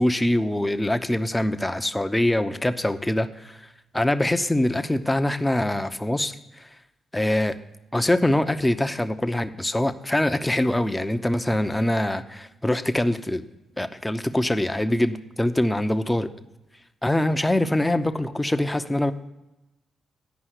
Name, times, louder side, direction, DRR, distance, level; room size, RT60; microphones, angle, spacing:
voice 1, 0.0-3.7 3.9-6.7 7.1-7.5 7.9-13.4 13.8-16.3 17.0-19.1, left 1 dB, 10° left, 9 dB, 0.7 m, -24 dB
9.2 x 5.5 x 8.1 m, 0.97 s
hypercardioid pair, 40°, 0 cm